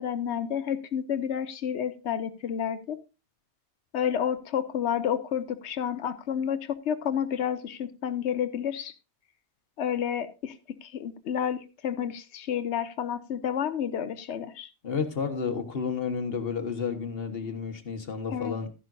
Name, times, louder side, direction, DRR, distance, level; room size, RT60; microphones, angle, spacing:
voice 1, 0.0-3.0 3.9-8.9 9.8-10.5 10.8-14.7 18.3-18.5, left 8 dB, 90° left, 12 dB, 1.0 m, -30 dB
voice 2, 14.8-18.7, left 5 dB, 60° left, 7 dB, 1.5 m, -31 dB
13.5 x 10.5 x 2.6 m, 0.29 s
omnidirectional pair, 1.1 m